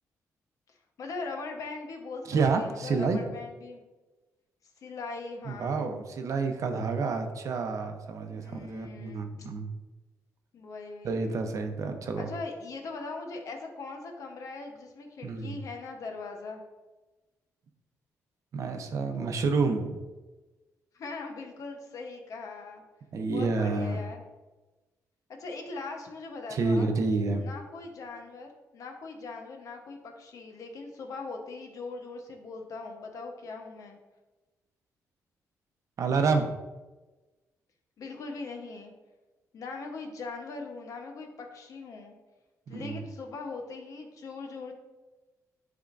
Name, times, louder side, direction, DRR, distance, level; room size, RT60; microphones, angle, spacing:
voice 1, 0.7-3.8 4.8-5.8 8.4-9.3 10.5-11.5 12.2-16.6 20.9-22.8 23.3-24.2 25.3-26.9 27.4-28.5 28.7-34.0 38.0-38.9 39.5-42.2 42.7-44.7, left 3 dB, 65° left, 2 dB, 1.0 m, -40 dB
voice 2, 2.3-3.2 5.5-9.7 11.0-12.3 15.2-15.6 18.5-20.0 23.1-24.0 26.5-27.4 36.0-36.6 42.7-43.0, right 4 dB, 60° right, 5 dB, 0.7 m, -29 dB
10.0 x 3.6 x 2.6 m, 1.2 s
cardioid pair, 115°, 6 cm